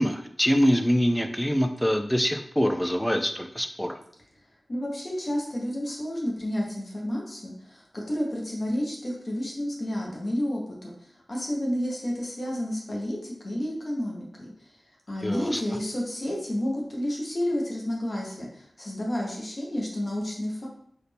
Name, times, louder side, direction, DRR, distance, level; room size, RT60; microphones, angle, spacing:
voice 1, 0.0-4.0 15.2-15.6, equal, 5° left, 5 dB, 0.4 m, -24 dB
voice 2, 4.7-10.9 11.3-14.5 15.1-20.7, equal, 45° left, -2 dB, 1.1 m, -30 dB
4.1 x 2.6 x 3.4 m, 0.66 s
wide cardioid pair, 90°, 0 cm